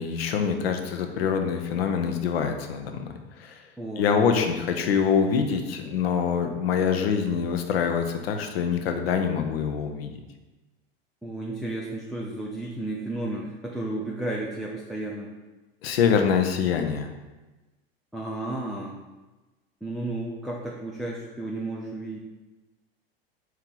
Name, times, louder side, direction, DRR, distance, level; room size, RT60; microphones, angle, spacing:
voice 1, 0.0-3.6 4.0-10.1 15.8-17.1, left 6 dB, 75° left, 6 dB, 0.6 m, -25 dB
voice 2, 3.8-4.5 11.2-15.3 18.1-19.0 19.8-22.2, right 2 dB, ahead, -4 dB, 0.5 m, -33 dB
4.4 x 3.0 x 3.8 m, 1.1 s
hypercardioid pair, 85°, 31 cm